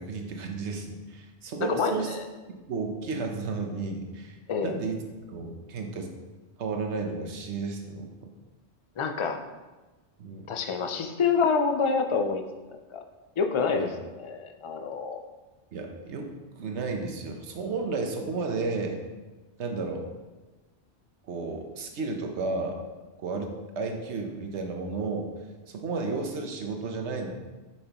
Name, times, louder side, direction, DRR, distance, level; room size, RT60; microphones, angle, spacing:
voice 1, 0.0-2.2 2.5-5.0 5.3-6.1 6.6-8.1 10.2-10.5 13.8-13.9 15.7-19.0 19.6-20.1 21.3-22.8 23.2-25.3 25.7-27.3, right 4 dB, 85° right, 3 dB, 1.1 m, -33 dB
voice 2, 1.7-2.2 4.5-4.7 9.0-9.4 10.5-12.4 12.9-13.0 13.4-13.9 14.2-15.2, left 5 dB, 45° left, 6 dB, 0.4 m, -27 dB
6.5 x 6.1 x 3.0 m, 1.2 s
omnidirectional pair, 1.1 m